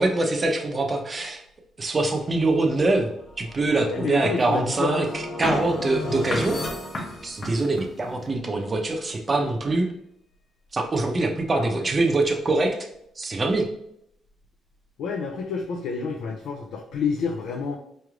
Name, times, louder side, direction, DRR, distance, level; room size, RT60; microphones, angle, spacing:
voice 1, 0.0-1.4 1.8-3.1 3.4-6.6 7.2-9.9 10.7-12.8 13.2-13.7, right 2 dB, 30° right, 3 dB, 0.7 m, -24 dB
sound 1, 2.9-8.0, left 1 dB, 55° left, 1.1 m, -36 dB
voice 2, 3.8-5.1 11.5-11.9 15.0-17.8, left 5 dB, 75° left, 1 dB, 0.4 m, -29 dB
sound 2, 5.4-8.3, left 2 dB, 30° left, 0.6 m, -34 dB
4.6 x 3.2 x 2.4 m, 0.76 s
cardioid pair, 90°, 0 cm